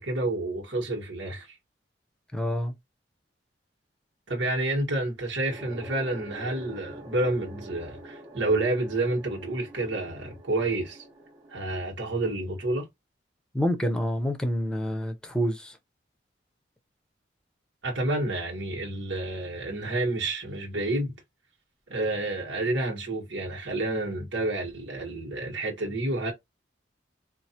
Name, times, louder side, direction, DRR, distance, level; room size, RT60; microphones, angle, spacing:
voice 1, 0.0-1.6 4.3-11.0 11.5-12.9 17.8-21.1 21.9-26.3, right 2 dB, 80° right, 1.5 m, -29 dB
voice 2, 2.3-2.7 13.5-15.8, equal, 5° left, 0.7 m, -27 dB
sound 1, 5.5-11.7, right 1 dB, 20° right, 1.1 m, -46 dB
4.5 x 2.5 x 2.9 m
head